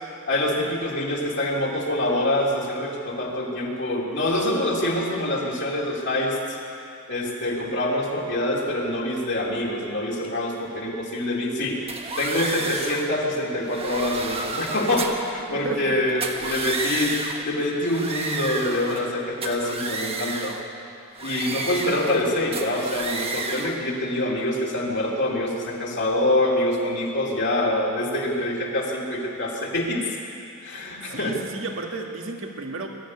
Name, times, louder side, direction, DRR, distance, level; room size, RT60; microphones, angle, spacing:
voice 1, 0.3-6.6 7.1-17.2 17.4-20.6 21.2-30.0 30.6-31.4, left 1 dB, 50° left, -3 dB, 3.4 m, -25 dB
sound 1, 11.9-13.1 13.6-15.3 16.1-17.5 17.8-19.1 19.4-20.6 21.2-22.2 22.5-23.8, right 3 dB, 25° right, 1.4 m, -31 dB
voice 2, 15.5-16.0 31.1-32.9, right 3 dB, 60° right, 2 dB, 1.9 m, -33 dB
21.0 x 13.5 x 9.9 m, 2.7 s
head